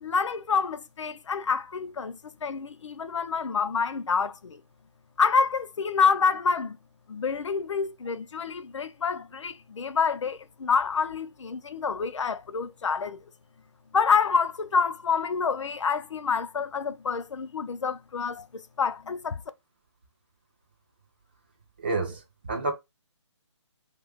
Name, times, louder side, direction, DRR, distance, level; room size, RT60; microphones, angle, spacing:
voice 1, 0.0-4.6 5.2-6.8 7.1-13.2 13.9-18.5 18.8-19.4, left 5 dB, 75° left, 0.5 m, -27 dB
voice 2, 21.8-22.7, right 3 dB, 20° right, 0.4 m, -29 dB
2.7 x 2.2 x 3.4 m
hypercardioid pair, 170°, 15 cm